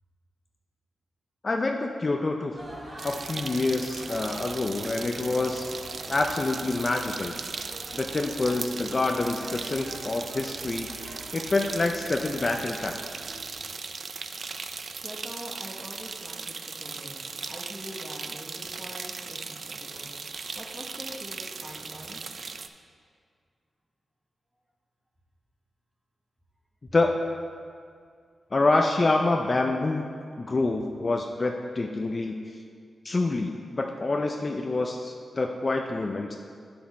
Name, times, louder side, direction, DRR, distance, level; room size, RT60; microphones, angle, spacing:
voice 1, 1.4-2.5 3.0-5.7 6.1-7.3 7.9-13.0 26.9-27.1 28.5-30.1 30.4-32.4 33.0-36.4, left 2 dB, 30° left, 3 dB, 0.4 m, -27 dB
sound 1, 2.6-13.5, equal, 30° right, 1.4 m, -45 dB
sound 2, 3.0-22.7, right 4 dB, 50° right, 0.3 m, -38 dB
voice 2, 15.0-22.2, equal, 15° right, 0 dB, 0.9 m, -44 dB
8.5 x 5.9 x 4.2 m, 2.1 s
wide cardioid pair, 145°, 0 cm